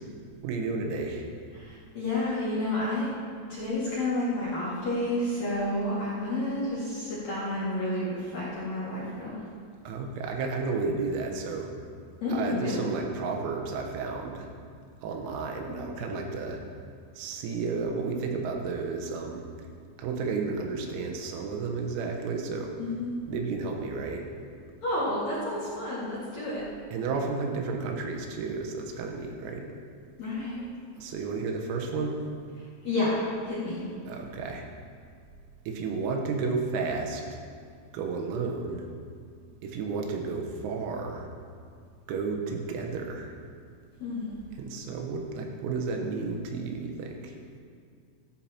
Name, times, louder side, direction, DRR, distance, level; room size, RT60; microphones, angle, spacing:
voice 1, 0.4-1.3 9.9-11.7 12.3-14.5 15.0-16.6 17.2-19.7 20.0-22.8 23.3-24.2 26.9-29.7 31.0-32.2 34.1-34.7 35.7-37.4 37.9-38.9 39.6-41.3 42.1-43.3 44.6-47.4, right 4 dB, 85° right, 2 dB, 3.9 m, -32 dB
voice 2, 1.6-3.1 3.5-9.4 12.2-12.8 15.6-15.9 22.8-23.1 24.8-26.6 30.2-30.6 32.8-33.8 44.0-44.3, left 1 dB, 50° left, -9 dB, 2.4 m, -30 dB
14.5 x 14.0 x 3.0 m, 2.1 s
omnidirectional pair, 5.9 m